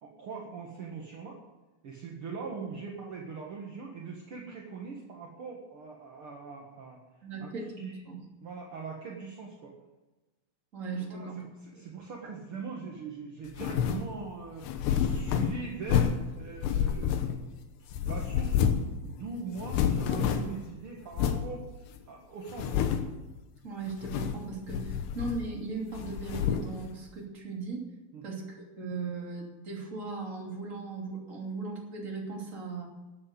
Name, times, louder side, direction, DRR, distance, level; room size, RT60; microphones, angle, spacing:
voice 1, 0.0-1.4 1.8-7.0 7.4-7.5 7.8-8.0 8.4-9.7 11.1-11.3 11.6-14.7 15.0-17.3 17.8-21.7 22.1-22.9 28.1-28.3, right 5 dB, 55° right, -1 dB, 1.6 m, -41 dB
voice 2, 7.2-8.2 10.7-11.5 23.6-27.8 28.2-32.9, right 3 dB, 25° right, -1 dB, 2.4 m, -38 dB
sound 1, 13.5-14.1 14.6-16.3 16.6-17.6 17.9-18.9 19.2-19.3 19.6-20.6 21.1-21.5 22.0-22.1 22.5-23.2 23.9-24.4 24.7-25.6 25.9-26.8, left 8 dB, 85° left, 3.2 m, -29 dB
13.5 x 8.8 x 8.0 m, 1.1 s
omnidirectional pair, 4.7 m